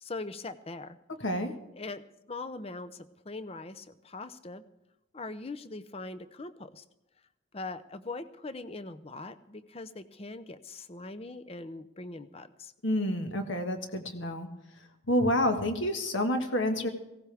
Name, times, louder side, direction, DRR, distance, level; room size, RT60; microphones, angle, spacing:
voice 1, 0.0-1.0 1.8-2.0 2.3-4.6 5.1-6.8 7.5-12.7, left 3 dB, 30° left, 13 dB, 0.6 m, -41 dB
voice 2, 1.2-1.5 12.8-14.5 15.1-16.9, left 1 dB, 65° left, 5 dB, 1.6 m, -28 dB
18.5 x 16.5 x 3.5 m, 0.92 s
head